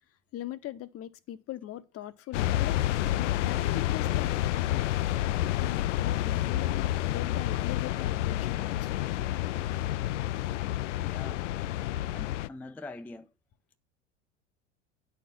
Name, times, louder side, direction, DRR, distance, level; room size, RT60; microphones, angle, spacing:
voice 1, 0.3-2.8 3.2-4.4 5.4-9.1 11.9-12.1, left 13 dB, 40° left, 0.8 m, -41 dB
sound 1, 2.3-12.5, left 14 dB, 75° left, 0.5 m, -29 dB
voice 2, 11.0-11.9 12.1-13.3, left 2 dB, 5° left, 0.4 m, -45 dB
9.9 x 4.4 x 7.1 m
hypercardioid pair, 80°, 37 cm